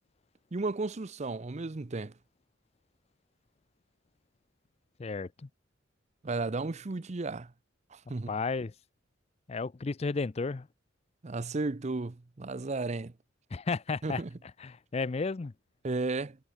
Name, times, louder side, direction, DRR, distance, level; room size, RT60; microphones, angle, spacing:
voice 1, 0.5-2.1 6.2-7.5 7.9-8.3 11.2-13.1 14.0-14.3 15.8-16.4, right 3 dB, 35° right, 0.6 m, -34 dB
voice 2, 8.3-8.7 9.5-10.7 13.5-14.2 14.6-15.5, left 4 dB, 30° left, 0.4 m, -32 dB
head